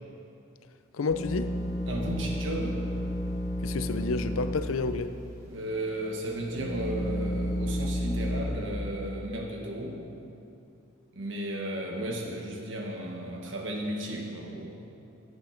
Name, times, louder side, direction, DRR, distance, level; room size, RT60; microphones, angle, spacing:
voice 1, 0.9-1.5 3.6-5.1, left 4 dB, 85° left, 11 dB, 0.5 m, -30 dB
sound 1, 1.1-4.6 4.9-5.0 5.7-8.4, equal, 15° right, 1.6 m, -32 dB
voice 2, 1.9-2.8 5.5-10.0 11.1-14.8, right 1 dB, 65° right, 0 dB, 1.4 m, -34 dB
15.5 x 7.9 x 4.5 m, 2.6 s
head